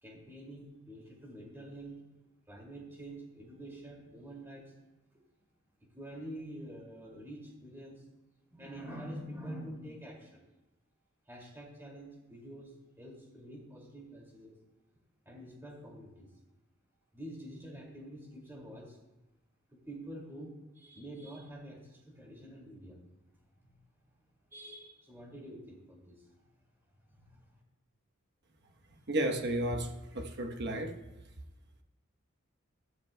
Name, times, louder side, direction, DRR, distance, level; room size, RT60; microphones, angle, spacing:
voice 1, 0.0-2.0 2.5-4.7 5.8-8.0 8.5-10.5 11.3-14.6 15.3-16.3 17.1-19.0 19.7-23.0 23.6-23.8 24.5-26.5 27.0-27.4, right 1 dB, 10° right, 2.2 m, -47 dB
voice 2, 29.1-31.0, right 1 dB, 55° right, 1.0 m, -33 dB
14.0 x 12.0 x 2.2 m
head